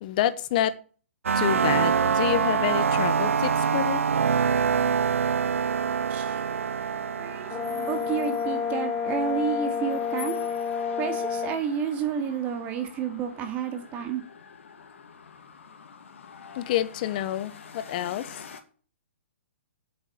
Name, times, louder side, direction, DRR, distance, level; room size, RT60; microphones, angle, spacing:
voice 1, 0.0-0.7 1.3-4.0 16.5-18.4, left 12 dB, 40° left, 14 dB, 1.2 m, -28 dB
sound 1, 1.2-9.9, right 6 dB, 85° right, 0.8 m, -26 dB
sound 2, 5.8-18.6, left 6 dB, 70° left, 2.4 m, -46 dB
voice 2, 6.1-6.7 7.2-10.4 11.0-14.2, right 7 dB, 20° right, 5 dB, 2.5 m, -31 dB
Brass instrument, 7.5-11.6, left 6 dB, 15° left, 0.9 m, -29 dB
8.7 x 7.8 x 8.0 m, 0.41 s
hypercardioid pair, 150°, 7 cm